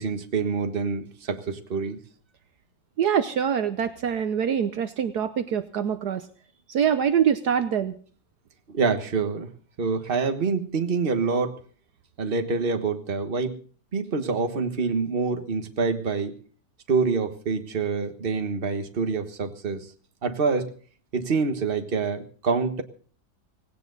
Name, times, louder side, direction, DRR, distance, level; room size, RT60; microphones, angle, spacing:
voice 1, 0.0-2.0 8.7-9.5 9.8-11.6 12.2-13.6 13.9-16.4 16.9-19.9 20.2-20.7 21.1-22.8, right 4 dB, 35° right, 7 dB, 1.5 m, -26 dB
voice 2, 3.0-6.2 6.7-7.9, right 8 dB, 65° right, 11 dB, 1.4 m, -24 dB
18.5 x 17.0 x 4.0 m, 0.43 s
omnidirectional pair, 1.9 m